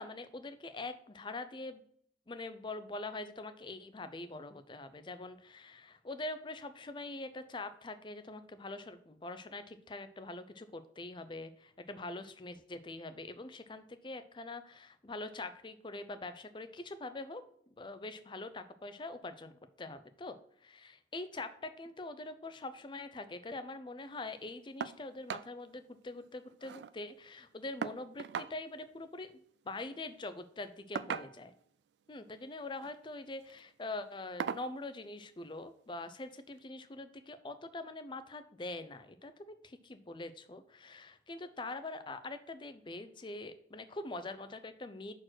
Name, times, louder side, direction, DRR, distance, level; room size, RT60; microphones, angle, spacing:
voice 1, 0.0-1.8 2.3-17.4 17.8-29.4 29.6-31.5 32.1-45.1, left 2 dB, 25° left, 11 dB, 0.5 m, -44 dB
sound 1, 24.8-25.0 25.3-25.5 25.9-26.0 26.2-26.9 27.8-28.5 29.8-30.0 30.9-31.6 32.6-33.0 33.4-33.6 34.4-34.7 36.0-36.1 36.6-36.7, right 7 dB, 70° right, 0.3 m, -39 dB
6.1 x 4.5 x 6.1 m, 0.63 s
head